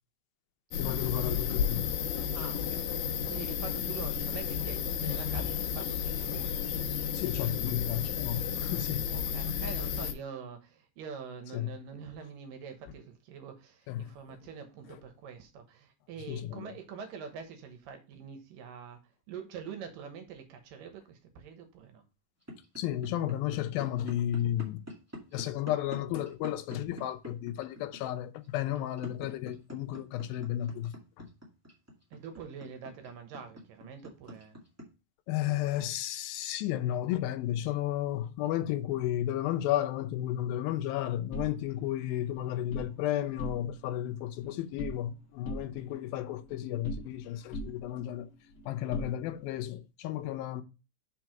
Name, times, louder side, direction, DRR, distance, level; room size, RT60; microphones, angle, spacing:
sound 1, 0.7-10.1, left 8 dB, 75° left, 2.2 m, -32 dB
voice 1, 0.8-1.9 7.1-9.0 11.5-11.7 13.9-14.1 16.3-16.7 22.8-24.8 25.3-31.3 35.3-48.3 48.7-50.6, left 12 dB, 90° left, 2.5 m, -33 dB
voice 2, 2.3-3.0 3.3-6.5 9.1-19.0 19.3-22.0 32.1-34.6, right 6 dB, 75° right, 2.7 m, -45 dB
sound 2, 22.4-34.8, left 1 dB, 10° right, 0.9 m, -44 dB
sound 3, 41.3-42.9 43.3-43.9 44.2-45.1 45.4-47.2 47.5-49.6, equal, 40° left, 1.3 m, -42 dB
5.7 x 4.7 x 5.8 m
omnidirectional pair, 4.1 m